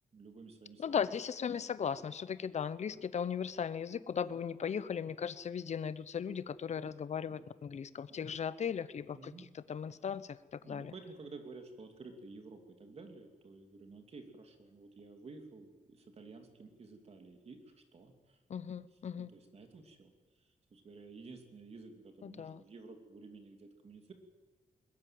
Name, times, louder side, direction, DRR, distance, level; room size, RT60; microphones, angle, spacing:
voice 1, 0.1-1.0 3.0-3.1 4.3-4.5 6.7-6.9 7.3-7.5 8.1-8.3 9.1-9.4 10.6-17.6 17.9-18.4 19.2-24.1, right 3 dB, 45° right, 5 dB, 3.0 m, -52 dB
voice 2, 0.8-10.9 18.5-19.3 22.2-22.6, left 7 dB, 55° left, 16 dB, 0.9 m, -37 dB
21.5 x 20.5 x 7.8 m, 1.3 s
wide cardioid pair, 160°, 14 cm